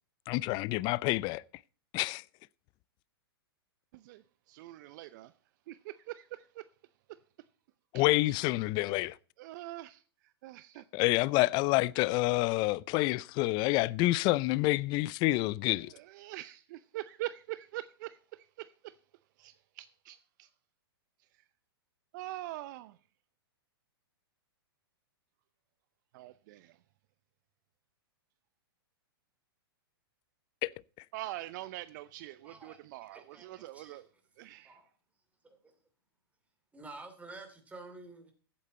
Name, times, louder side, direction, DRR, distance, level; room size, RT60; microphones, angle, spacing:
voice 1, 0.3-1.4 1.9-2.2 7.9-9.2 10.9-15.9 30.6-30.7, left 20 dB, 35° left, 0.4 m, -28 dB
voice 2, 3.9-5.3 5.7-6.6 8.2-8.3 9.4-10.9 15.7-19.0 19.4-20.5 22.1-23.0 26.1-26.8 31.1-34.1 34.4-34.8, right 16 dB, 50° right, 0.6 m, -44 dB
voice 3, 32.4-32.8 33.1-34.0 34.4-34.9 35.4-35.6 36.7-38.3, right 2 dB, 10° right, 2.9 m, -50 dB
15.0 x 8.6 x 4.2 m
hypercardioid pair, 120°, 13 cm